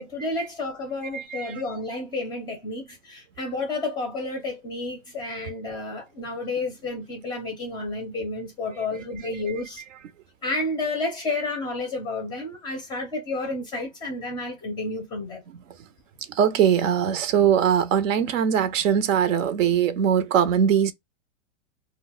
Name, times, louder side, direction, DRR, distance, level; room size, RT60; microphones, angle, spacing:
voice 1, 0.0-9.8 10.4-15.4, left 2 dB, 10° left, 0.5 m, -31 dB
voice 2, 1.1-1.6 8.9-9.0 16.3-20.9, right 8 dB, 75° right, 0.6 m, -21 dB
2.2 x 2.1 x 3.7 m
supercardioid pair, 145°, 39 cm